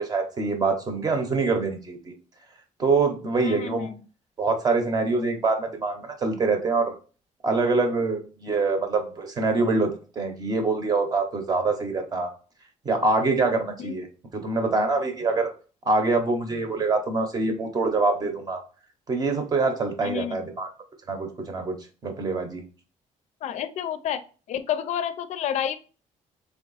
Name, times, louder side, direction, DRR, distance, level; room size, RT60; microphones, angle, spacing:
voice 1, 0.0-2.1 2.8-3.9 4.4-6.9 7.4-9.9 10.2-12.3 12.8-14.1 14.3-15.5 15.8-18.6 19.1-20.7 21.1-21.7 22.0-22.6, right 3 dB, 30° right, 5 dB, 0.8 m, -25 dB
voice 2, 3.4-4.0 13.8-13.9 20.0-20.4 23.4-24.2 24.5-25.8, left 9 dB, 65° left, 11 dB, 0.4 m, -29 dB
3.5 x 3.4 x 4.0 m, 0.37 s
cardioid pair, 165°, 13 cm